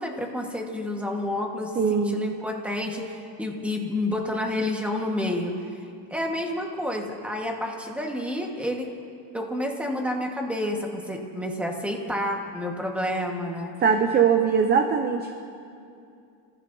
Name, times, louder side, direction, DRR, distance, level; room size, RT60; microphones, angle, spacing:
voice 1, 0.0-5.5 6.1-8.9 9.3-13.7, left 1 dB, 5° right, 1 dB, 1.5 m, -29 dB
voice 2, 1.8-2.3 13.8-15.3, right 6 dB, 25° right, 5 dB, 0.6 m, -21 dB
30.0 x 15.5 x 2.7 m, 2.5 s
cardioid pair, 155°, 45 cm